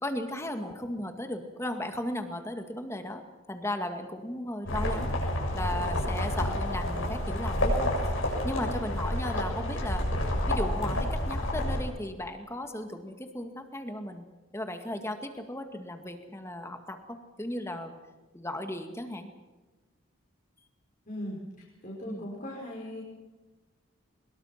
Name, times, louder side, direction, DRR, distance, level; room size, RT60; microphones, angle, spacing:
voice 1, 0.0-3.2 3.5-5.1 5.5-10.1 10.4-14.2 14.5-17.9 18.3-19.3 22.1-22.3, left 1 dB, 15° left, 6 dB, 2.1 m, -36 dB
sound 1, 4.7-11.8, left 1 dB, 75° left, 7.2 m, -29 dB
voice 2, 21.1-21.4 21.8-23.0, left 1 dB, 40° left, -4 dB, 5.1 m, -38 dB
24.0 x 22.0 x 5.9 m, 1.2 s
head